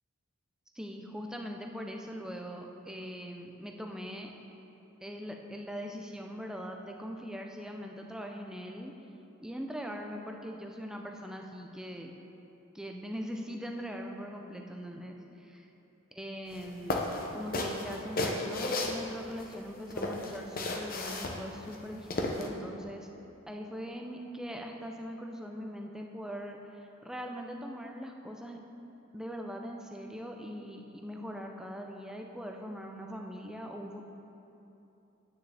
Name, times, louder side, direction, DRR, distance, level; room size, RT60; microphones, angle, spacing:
voice 1, 0.7-4.3 5.0-8.9 9.4-12.1 12.7-15.7 16.1-17.0 17.3-23.1 23.5-28.6 29.1-34.0, equal, 5° right, 2 dB, 0.5 m, -41 dB
sound 1, 16.5-16.6 16.9-19.5 19.9-22.5, left 2 dB, 40° left, 0.7 m, -33 dB
9.3 x 9.1 x 3.4 m, 2.9 s
head